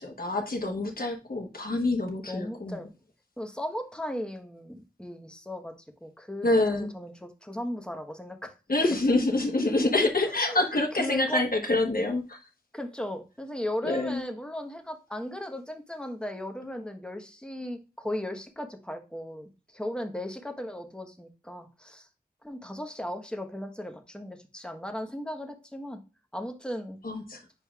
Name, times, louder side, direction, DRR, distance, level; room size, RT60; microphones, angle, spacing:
voice 1, 0.0-2.8 6.4-6.9 8.7-12.4 13.8-14.2 27.0-27.4, left 2 dB, 65° left, 2 dB, 1.2 m, -26 dB
voice 2, 2.3-2.9 3.4-5.7 6.0-8.5 10.2-10.6 10.9-11.4 12.7-22.1 22.4-26.0 26.3-27.0, left 1 dB, 5° left, 5 dB, 1.2 m, -37 dB
7.7 x 5.1 x 2.4 m, 0.31 s
wide cardioid pair, 45°, 16 cm